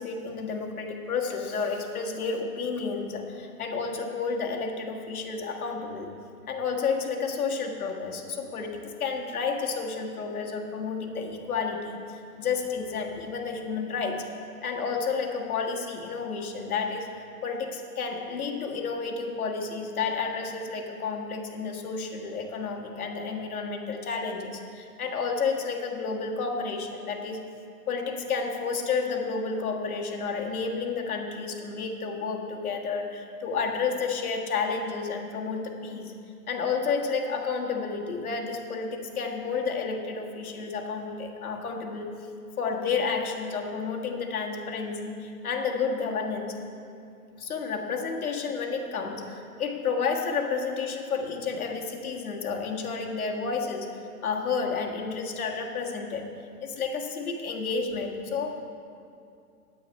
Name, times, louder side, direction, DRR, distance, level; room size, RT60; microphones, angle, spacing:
voice 1, 0.0-6.1 6.5-14.2 14.6-27.4 27.9-36.1 36.5-42.1 42.6-46.6 47.4-56.3 56.6-58.6, left 5 dB, 65° left, 2 dB, 1.6 m, -31 dB
9.2 x 8.9 x 5.4 m, 2.5 s
hypercardioid pair, 150°, 46 cm